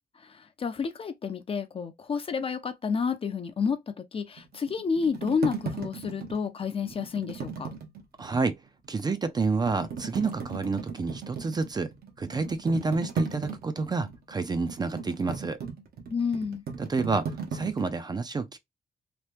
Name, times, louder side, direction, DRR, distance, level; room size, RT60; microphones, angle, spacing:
voice 1, 0.2-7.7 16.1-16.6, left 5 dB, 35° left, 0.4 m, -30 dB
sound 1, 4.4-8.4 8.8-8.9 9.4-17.9, right 5 dB, 75° right, 0.9 m, -37 dB
voice 2, 8.2-8.6 8.9-15.6 16.8-18.6, right 4 dB, 25° right, 0.4 m, -29 dB
3.0 x 2.2 x 3.2 m
cardioid pair, 125°, 16 cm